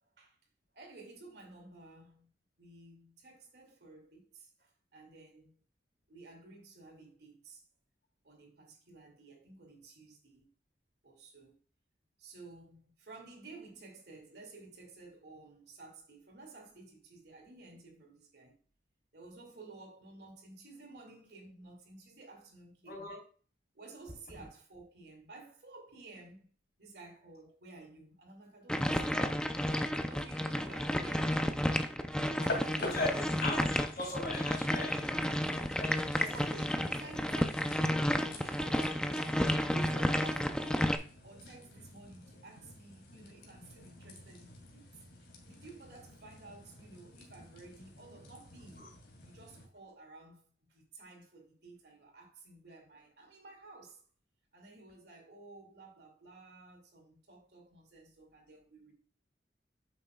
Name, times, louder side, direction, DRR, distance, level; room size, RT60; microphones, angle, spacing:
voice 1, 0.0-0.4 0.7-2.3 2.6-5.5 6.1-7.6 8.2-10.5 11.0-11.6 12.2-18.6 19.1-23.2 23.7-26.5 26.8-29.3 30.1-31.9 32.4-33.8 35.3-35.8 36.2-44.9 45.2-48.9 49.2-54.0 54.5-58.9, right 3 dB, 65° right, 2.3 m, -53 dB
voice 2, 22.9-23.2 32.8-35.1 35.7-36.3 48.8-48.9, left 2 dB, 55° left, 3.7 m, -38 dB
sound 1, 28.7-41.0, equal, 5° left, 0.5 m, -31 dB
sound 2, 32.3-49.7, left 2 dB, 80° left, 2.3 m, -48 dB
8.9 x 7.1 x 2.3 m
head